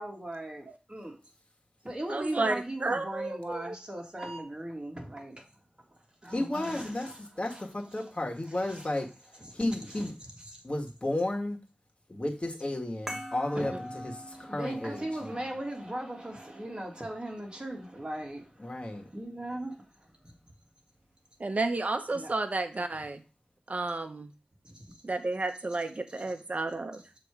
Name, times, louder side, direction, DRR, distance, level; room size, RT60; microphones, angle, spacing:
voice 1, 0.0-1.2 1.8-7.2 7.5-7.6 8.6-8.9 9.4-9.5 9.9-10.0 10.5-10.6 13.5-13.8 14.2-20.5 22.1-22.3 24.6-25.0 25.7-25.8 26.1-26.3 27.0-27.1, right 1 dB, 30° right, 2.0 m, -39 dB
voice 2, 2.1-2.5 2.8-3.7 13.5-13.7 21.4-23.2 23.7-24.3 25.0-27.0, right 3 dB, 55° right, 0.8 m, -31 dB
voice 3, 6.3-10.1 10.6-11.6 12.1-15.5 18.6-19.1, left 1 dB, 40° left, 1.5 m, -33 dB
sound 1, 13.1-18.1, equal, 15° right, 1.3 m, -45 dB
6.9 x 3.0 x 4.8 m
cardioid pair, 40°, 3 cm